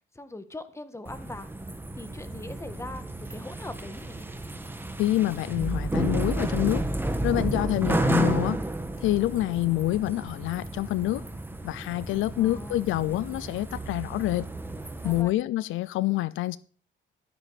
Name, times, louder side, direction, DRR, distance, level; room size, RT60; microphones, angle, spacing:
voice 1, 0.1-1.5 2.0-4.3 12.4-12.9 15.0-15.3, left 2 dB, 15° left, 1.6 m, -41 dB
sound 1, 1.1-15.2, right 2 dB, 10° right, 1.5 m, -32 dB
voice 2, 5.0-6.9 7.2-8.6 9.0-11.2 11.6-14.5 15.0-16.6, left 16 dB, 85° left, 0.5 m, -27 dB
13.0 x 10.0 x 4.2 m
cardioid pair, 90°, 20 cm